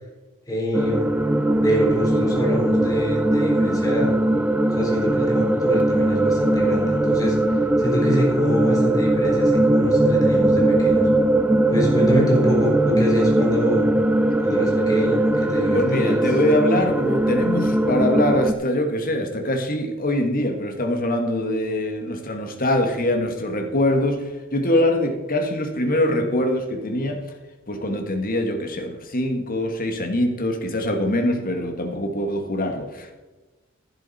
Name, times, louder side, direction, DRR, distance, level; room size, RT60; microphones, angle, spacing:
voice 1, 0.5-1.1 1.5-4.1 4.7-11.1 11.7-13.9 14.4-16.2, equal, 15° left, -3 dB, 4.0 m, -25 dB
sound 1, 0.7-18.5, right 1 dB, 5° right, 0.5 m, -20 dB
voice 2, 15.7-27.2 27.7-33.1, left 1 dB, 45° left, 4 dB, 1.7 m, -23 dB
11.5 x 10.5 x 4.3 m, 1.2 s
head